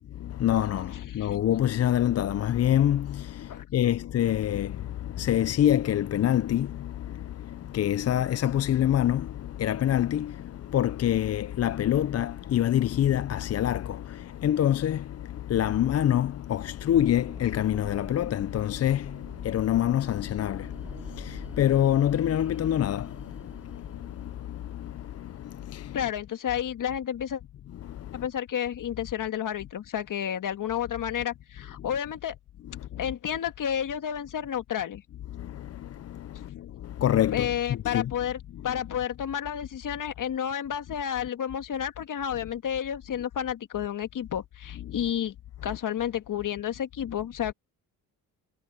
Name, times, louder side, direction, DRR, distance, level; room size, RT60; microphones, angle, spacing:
voice 1, 0.2-26.0 27.8-28.2 32.8-32.9 35.3-38.1, left 11 dB, 45° left, 0.5 m, -26 dB
voice 2, 0.9-1.4 3.5-3.6 25.9-27.4 28.1-32.4 33.0-35.0 37.3-45.4 45.6-47.5, left 9 dB, 60° left, 1.7 m, -31 dB
sound 1, 4.4-9.8 10.3-10.4 10.9-11.0, left 12 dB, 75° left, 6.7 m, -44 dB
sound 2, 16.9-25.8, right 1 dB, 5° right, 5.9 m, -47 dB
cardioid pair, 75°, 36 cm